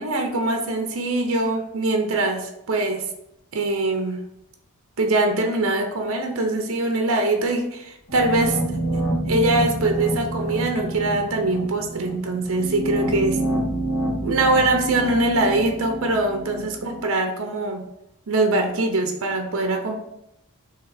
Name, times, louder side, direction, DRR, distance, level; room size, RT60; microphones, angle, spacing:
voice 1, 0.0-3.0 3.5-4.2 5.0-8.6 9.3-13.4 14.2-17.9 18.3-20.0, right 2 dB, 65° right, 4 dB, 0.6 m, -23 dB
sound 1, 8.1-17.0, right 1 dB, 80° left, 1.5 m, -27 dB
3.7 x 2.8 x 4.7 m, 0.82 s
head